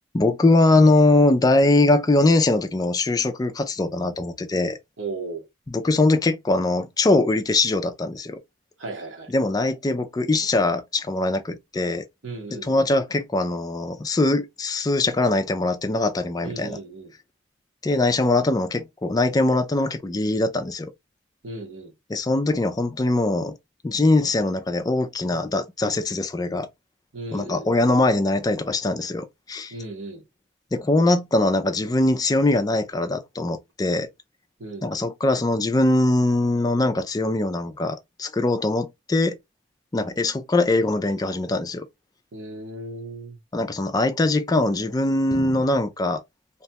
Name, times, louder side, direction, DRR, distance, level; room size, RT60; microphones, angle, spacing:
voice 1, 0.1-4.8 5.7-8.4 9.3-12.0 12.5-16.8 17.8-20.9 22.1-23.6 23.8-26.7 27.3-29.7 30.7-34.1 34.8-39.4 39.9-41.8 43.5-46.2, left 2 dB, 20° left, 0.3 m, -22 dB
voice 2, 5.0-5.4 8.8-9.3 12.2-12.7 16.4-17.1 21.4-21.9 27.1-27.7 29.7-30.2 34.6-34.9 42.3-43.4, right 3 dB, 85° right, 1.1 m, -35 dB
2.9 x 2.2 x 2.8 m
head